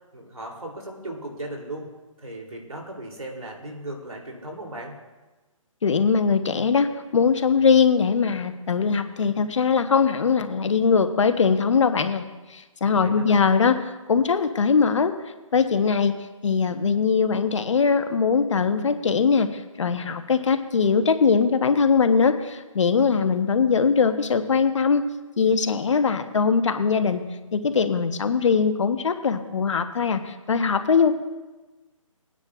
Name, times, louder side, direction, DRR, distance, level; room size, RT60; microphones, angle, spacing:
voice 1, 0.1-1.9 2.2-4.9 12.9-13.5, right 1 dB, 85° right, 1 dB, 3.1 m, -37 dB
voice 2, 5.8-12.2 12.5-15.1 15.5-16.1 16.4-25.0 25.4-27.2 27.5-31.2, left 5 dB, 60° left, 9 dB, 1.0 m, -21 dB
21.0 x 9.6 x 2.4 m, 1.2 s
figure-of-eight pair, 150°, 17 cm